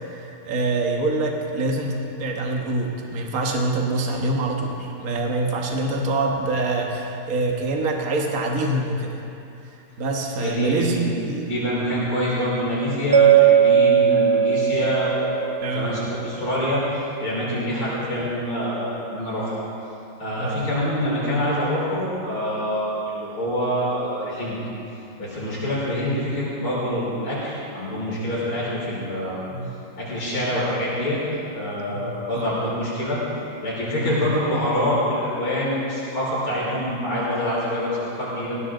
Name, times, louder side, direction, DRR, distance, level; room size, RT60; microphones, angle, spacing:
voice 1, 0.2-9.2 10.0-11.5 15.6-15.9 20.4-20.6 29.5-29.7 31.9-32.5 34.0-34.2, right 2 dB, 45° right, 1 dB, 1.8 m, -25 dB
voice 2, 10.4-16.8 17.2-19.6 20.2-24.6 25.2-29.4 30.0-31.2 31.6-33.2 33.6-38.6, equal, 85° left, -8 dB, 6.2 m, -26 dB
Mallet percussion, 13.1-16.1, right 8 dB, 60° right, 0.6 m, -17 dB
19.5 x 18.0 x 3.9 m, 2.7 s
omnidirectional pair, 2.3 m